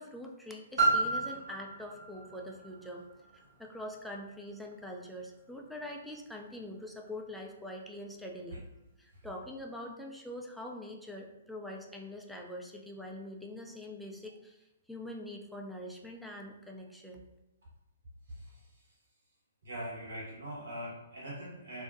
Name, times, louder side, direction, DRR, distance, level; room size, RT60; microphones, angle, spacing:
voice 1, 0.0-3.0 3.3-8.6 9.0-17.2, left 1 dB, ahead, -1 dB, 0.3 m, -44 dB
Piano, 0.8-6.2 6.9-7.0, right 3 dB, 40° right, 1.0 m, -34 dB
voice 2, 19.6-21.8, equal, 65° right, -7 dB, 1.3 m, -41 dB
2.6 x 2.1 x 2.4 m, 0.94 s
figure-of-eight pair, 125°, 0 cm